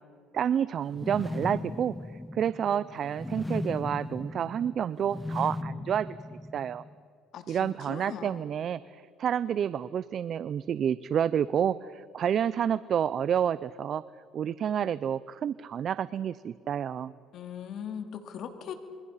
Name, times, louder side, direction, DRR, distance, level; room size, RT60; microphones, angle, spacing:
voice 1, 0.3-1.9 2.3-6.2 6.5-6.8 7.5-8.8 9.2-14.0 14.3-17.1, right 9 dB, 50° right, 17 dB, 0.6 m, -29 dB
sound 1, 0.9-6.9, left 2 dB, 10° left, 0.6 m, -37 dB
voice 2, 7.3-8.5 17.3-18.7, left 8 dB, 60° left, 7 dB, 2.7 m, -40 dB
28.0 x 23.5 x 5.7 m, 2.3 s
cardioid pair, 100°, 0 cm